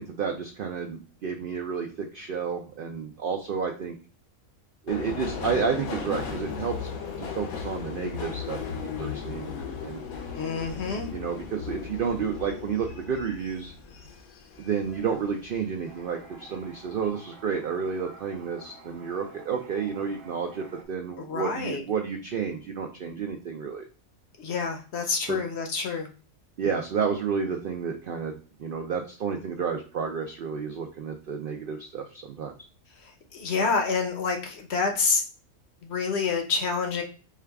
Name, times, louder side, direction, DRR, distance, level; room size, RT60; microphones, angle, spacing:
voice 1, 0.0-4.0 4.8-6.9 7.2-9.5 9.8-10.0 11.1-13.7 14.6-23.9 25.3-25.4 26.6-32.5, right 6 dB, 75° right, 4 dB, 0.5 m, -31 dB
Subway metro underground, 4.9-15.6 16.0-16.7 16.9-17.1, left 6 dB, 90° left, 1.2 m, -36 dB
voice 2, 10.3-11.1 21.2-21.8 24.4-26.1 33.0-35.2 35.8-37.0, left 4 dB, 60° left, 4 dB, 0.8 m, -28 dB
Toilet flush, 15.8-20.8, right 3 dB, 50° right, 0.8 m, -49 dB
4.6 x 2.3 x 3.4 m, 0.36 s
omnidirectional pair, 1.4 m